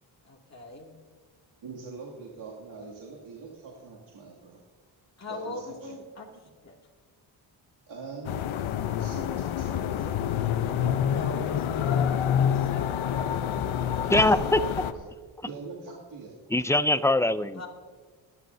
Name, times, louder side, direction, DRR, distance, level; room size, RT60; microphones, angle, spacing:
voice 1, 0.2-1.0 5.2-6.4 6.6-6.7 10.7-13.0 17.6-17.7, left 2 dB, 35° left, -1 dB, 2.5 m, -40 dB
voice 2, 1.6-4.6 5.3-6.0 7.9-10.2 14.0-14.5 14.9-15.0 15.5-16.3, right 4 dB, 70° right, -5 dB, 2.6 m, -43 dB
sound 1, 8.2-14.9, left 9 dB, 75° left, 0.8 m, -27 dB
sound 2, 9.0-14.3, right 2 dB, 15° right, 1.8 m, -49 dB
voice 3, 14.1-14.6 16.5-17.6, left 1 dB, 5° left, 14 dB, 0.3 m, -22 dB
24.5 x 11.0 x 2.7 m, 1.5 s
cardioid pair, 80°, 48 cm